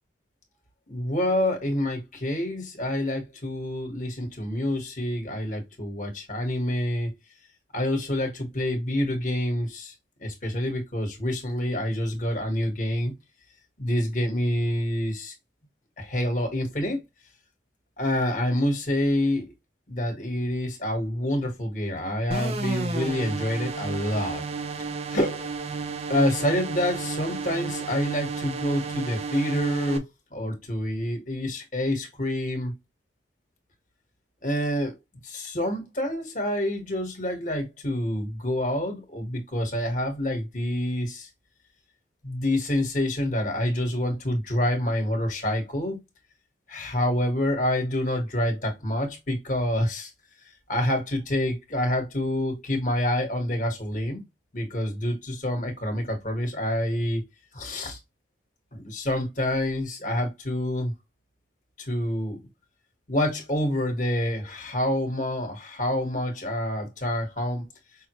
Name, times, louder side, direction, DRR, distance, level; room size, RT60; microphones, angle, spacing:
voice 1, 0.9-7.1 7.7-9.9 10.2-13.1 13.8-15.3 16.0-17.0 18.0-19.5 19.9-24.4 25.1-25.5 26.1-32.7 34.4-35.0 35.2-41.3 42.2-46.0 46.7-50.1 50.7-54.2 54.5-57.3 57.5-58.0 58.7-60.9 61.8-62.4 63.1-67.7, left 1 dB, 40° left, 1.4 m, -27 dB
sound 1, 22.3-30.0, right 4 dB, 35° right, 0.5 m, -32 dB
5.5 x 2.1 x 3.0 m
head